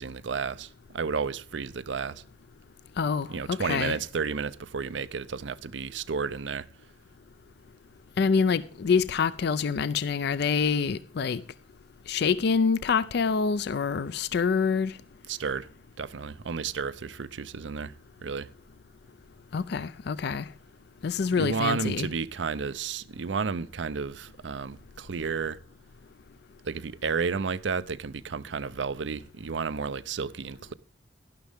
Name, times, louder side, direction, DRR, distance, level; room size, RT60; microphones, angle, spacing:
voice 1, 0.0-2.2 3.3-6.7 15.3-15.7 16.0-17.9 18.2-18.5 21.4-25.6 26.6-30.7, right 5 dB, 85° right, 0.6 m, -32 dB
voice 2, 3.0-4.0 8.2-11.4 12.1-15.0 19.5-20.5 21.0-22.1, left 5 dB, 65° left, 0.4 m, -26 dB
11.5 x 11.5 x 3.5 m
head